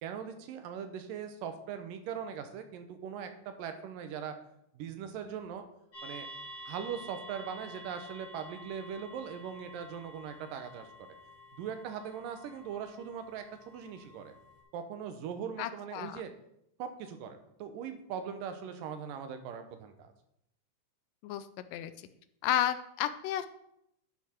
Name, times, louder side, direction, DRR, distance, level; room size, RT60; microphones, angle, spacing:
voice 1, 0.0-4.4 4.7-5.6 6.0-6.3 6.7-10.9 11.5-14.3 14.7-16.3 16.8-20.1, right 7 dB, 85° right, 7 dB, 2.6 m, -40 dB
sound 1, 5.9-14.6, equal, 40° left, 2.7 m, -50 dB
voice 2, 15.6-16.2 21.2-22.1 22.4-23.5, left 12 dB, 90° left, 12 dB, 2.3 m, -32 dB
11.0 x 5.9 x 4.4 m, 0.77 s
omnidirectional pair, 3.8 m